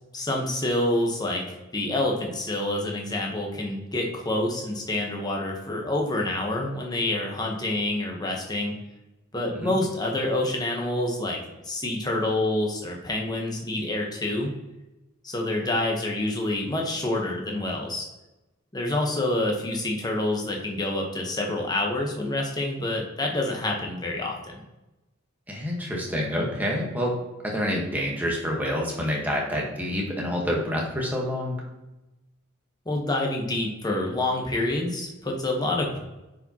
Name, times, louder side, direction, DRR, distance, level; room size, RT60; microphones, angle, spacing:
voice 1, 0.1-8.7 9.3-11.4 11.6-14.5 15.2-18.1 18.7-24.6 32.9-36.0, left 1 dB, 20° left, 0 dB, 1.1 m, -27 dB
voice 2, 25.5-27.1 27.4-31.5, equal, 10° right, -2 dB, 1.3 m, -27 dB
9.7 x 4.9 x 2.9 m, 1.0 s
head